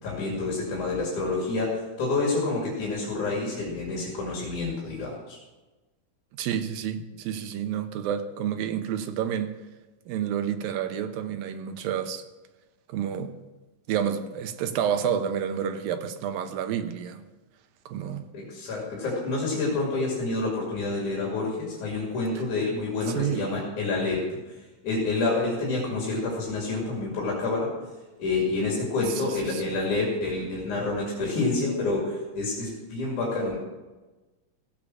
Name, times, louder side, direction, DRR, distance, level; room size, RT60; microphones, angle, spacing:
voice 1, 0.0-5.4 18.3-27.7 28.2-33.6, left 3 dB, 60° left, 3.9 m, -28 dB
voice 2, 6.4-9.5 10.1-12.2 12.9-13.3 13.9-17.2 17.9-18.2 23.1-23.5 29.2-29.3 29.5-29.6, right 8 dB, 90° right, 2.7 m, -29 dB
16.0 x 8.6 x 6.1 m
omnidirectional pair, 4.0 m